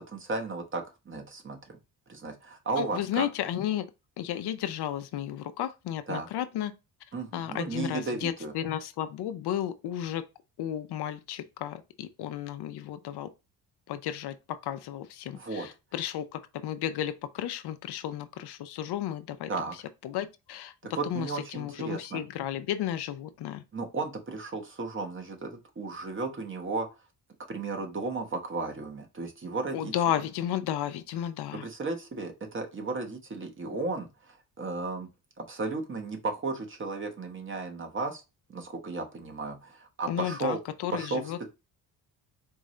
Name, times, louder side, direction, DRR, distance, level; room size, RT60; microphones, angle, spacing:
voice 1, 0.1-1.8 2.1-3.3 6.1-6.3 7.1-8.5 15.3-15.7 19.5-19.7 20.8-22.2 23.7-26.9 27.5-29.9 31.6-35.1 35.5-38.2 38.5-40.6 40.9-41.3, right 3 dB, 30° right, 1.1 m, -34 dB
voice 2, 2.8-3.9 4.2-6.7 7.3-10.2 10.6-13.3 13.9-14.4 14.6-19.5 20.0-20.7 21.0-23.6 29.7-31.7 40.1-41.5, left 11 dB, 70° left, 0.6 m, -33 dB
4.6 x 2.6 x 3.1 m
cardioid pair, 125°, 40 cm